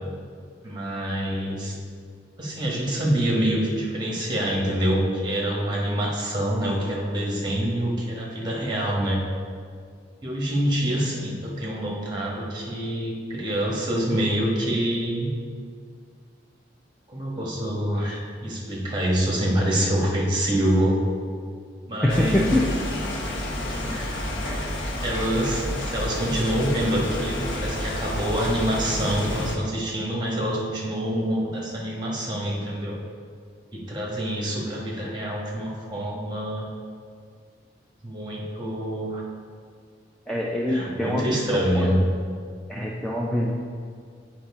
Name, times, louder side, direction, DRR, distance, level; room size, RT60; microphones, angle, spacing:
voice 1, 0.6-1.7 2.4-9.2 10.2-15.3 17.1-21.0 21.9-22.6 23.8-24.7 25.0-33.0 33.7-36.7 38.0-39.2 40.7-42.0, right 1 dB, 25° right, -3 dB, 1.2 m, -26 dB
voice 2, 22.0-22.6 23.6-23.7 40.3-41.9 42.7-43.5, left 1 dB, 5° left, -4 dB, 0.4 m, -25 dB
sound 1, 22.1-29.6, left 1 dB, 85° left, 0.9 m, -30 dB
8.8 x 4.8 x 3.6 m, 2.1 s
head